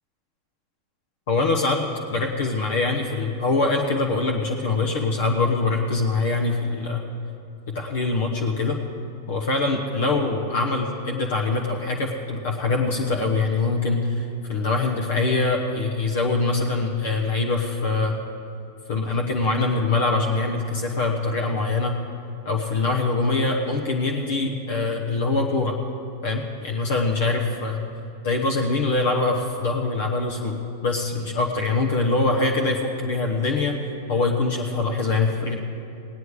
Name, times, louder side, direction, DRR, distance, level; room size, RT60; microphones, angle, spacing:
voice 1, 1.3-7.0 7.7-8.8 9.3-18.2 18.9-22.0 22.4-25.8 26.2-27.8 28.2-33.7 34.1-35.6, left 3 dB, 55° left, 1 dB, 1.1 m, -23 dB
18.0 x 9.4 x 4.9 m, 2.7 s
figure-of-eight pair, 90°, 0 cm